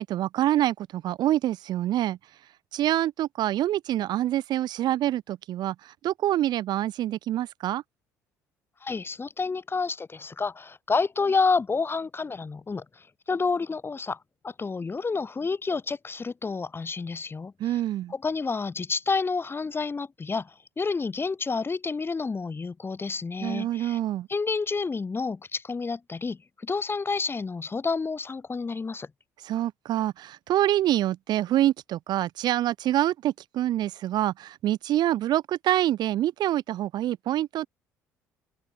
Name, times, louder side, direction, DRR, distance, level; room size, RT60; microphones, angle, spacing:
voice 1, 0.0-2.2 2.7-5.7 6.0-7.8 17.6-18.1 23.4-24.3 29.4-37.7, right 13 dB, 60° right, 4.3 m, -26 dB
voice 2, 8.8-14.2 14.4-17.8 18.1-24.0 24.3-29.1, left 4 dB, 30° left, 4.4 m, -29 dB
open air
hypercardioid pair, 60°, 8 cm